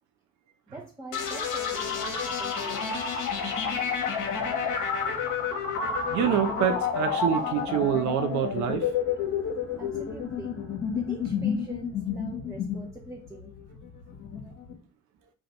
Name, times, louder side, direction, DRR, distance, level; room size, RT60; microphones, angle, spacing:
voice 1, 0.7-3.2 9.8-10.6 10.9-13.5, right 2 dB, 10° right, 0.6 m, -44 dB
sound 1, 1.1-14.7, left 6 dB, 55° left, 0.9 m, -30 dB
sound 2, 1.2-12.0, right 2 dB, 35° right, 1.1 m, -49 dB
voice 2, 6.1-8.9, right 9 dB, 55° right, 0.5 m, -26 dB
2.5 x 2.3 x 4.1 m
hypercardioid pair, 50°, 35 cm